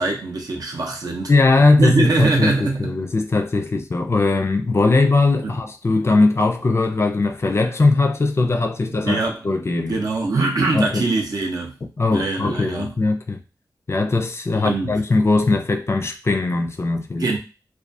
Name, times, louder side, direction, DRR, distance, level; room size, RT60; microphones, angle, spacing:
voice 1, 0.0-1.3 1.8-3.0 5.4-5.5 8.8-9.4 9.8-11.8 12.1-13.0 14.5-15.0 17.2-17.4, right 3 dB, 65° right, 0.6 m, -22 dB
voice 2, 1.3-10.0 10.7-11.0 12.0-13.4 13.9-17.3, left 3 dB, 40° left, 0.4 m, -19 dB
2.3 x 2.2 x 2.6 m
wide cardioid pair, 70°, 7 cm